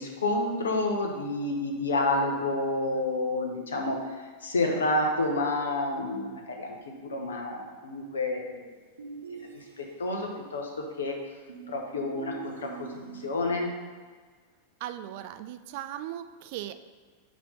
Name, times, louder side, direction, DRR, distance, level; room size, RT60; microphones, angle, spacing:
voice 1, 0.0-4.0 4.4-8.6 9.5-10.7 11.0-11.1 11.7-12.9 13.2-13.7, left 2 dB, 70° left, 2 dB, 1.0 m, -29 dB
sound 1, 9.0-10.2 11.5-13.7, right 6 dB, 70° right, 0.8 m, -44 dB
voice 2, 14.8-16.8, right 12 dB, 50° right, 11 dB, 0.3 m, -38 dB
6.0 x 3.1 x 5.5 m, 1.5 s
figure-of-eight pair, 90°, 0 cm